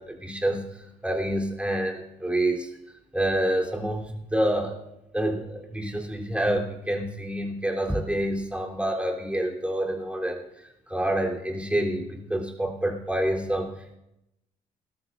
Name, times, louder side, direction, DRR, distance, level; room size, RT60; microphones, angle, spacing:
voice 1, 0.0-2.7 3.1-4.8 5.1-14.0, right 1 dB, 5° right, 0 dB, 3.5 m, -28 dB
19.5 x 13.5 x 2.6 m, 0.85 s
hypercardioid pair, 50°, 17 cm